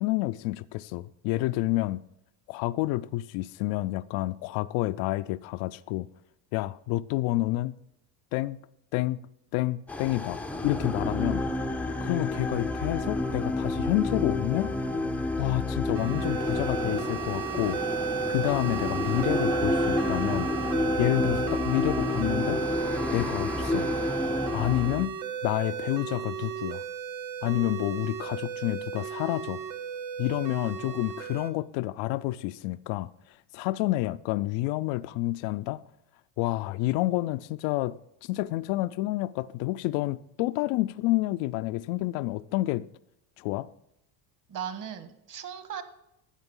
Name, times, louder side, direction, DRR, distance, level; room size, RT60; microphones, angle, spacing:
voice 1, 0.0-2.0 2.5-6.1 6.5-7.8 8.3-8.6 8.9-9.3 9.5-11.4 12.0-14.7 15.4-17.8 18.3-20.5 21.0-22.6 23.1-23.9 24.5-25.1 25.4-26.8 27.4-29.6 30.2-35.8 36.4-42.9 43.4-43.7, left 17 dB, 70° left, 0.5 m, -29 dB
sound 1, 9.9-25.1, left 2 dB, 5° left, 0.5 m, -30 dB
sound 2, 15.9-31.5, right 6 dB, 65° right, 1.3 m, -34 dB
voice 2, 44.5-45.8, right 8 dB, 40° right, 1.5 m, -37 dB
12.5 x 9.0 x 3.7 m
cardioid pair, 110°, 48 cm